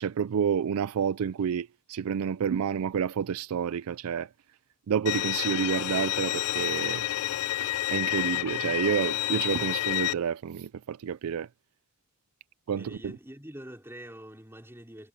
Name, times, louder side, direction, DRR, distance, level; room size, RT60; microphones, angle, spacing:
voice 1, 0.0-4.3 4.9-7.1 7.6-11.5 12.7-13.2, right 7 dB, 75° right, 0.4 m, -29 dB
Bowed string instrument, 5.1-10.1, left 15 dB, 80° left, 0.4 m, -29 dB
voice 2, 12.8-15.1, equal, 10° right, 4.3 m, -45 dB
head